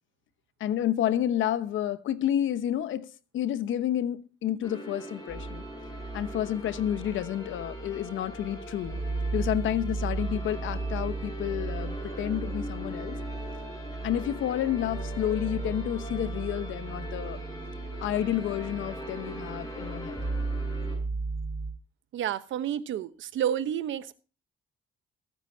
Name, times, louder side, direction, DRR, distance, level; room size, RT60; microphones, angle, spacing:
voice 1, 0.6-5.6 6.1-9.0 9.3-13.2 14.0-17.4 18.0-20.2, left 11 dB, 75° left, 1.0 m, -30 dB
sound 1, 4.6-21.0, equal, 15° left, 6.8 m, -41 dB
sound 2, 5.3-21.7, right 3 dB, 15° right, 2.4 m, -36 dB
voice 2, 22.1-24.1, right 10 dB, 75° right, 1.0 m, -30 dB
22.0 x 9.0 x 2.8 m
cardioid pair, 90°, 20 cm